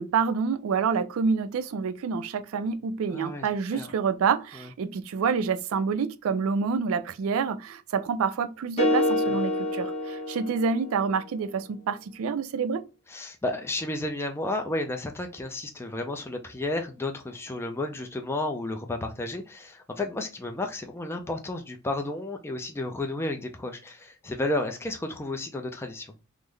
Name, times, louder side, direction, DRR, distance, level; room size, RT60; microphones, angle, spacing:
voice 1, 0.0-12.8, right 5 dB, 65° right, 0.3 m, -27 dB
voice 2, 3.1-3.9 4.5-4.7 9.3-9.4 13.1-26.1, left 2 dB, 10° left, 0.4 m, -32 dB
sound 1, 8.8-11.1, left 1 dB, 30° left, 0.9 m, -27 dB
3.6 x 2.0 x 3.1 m
head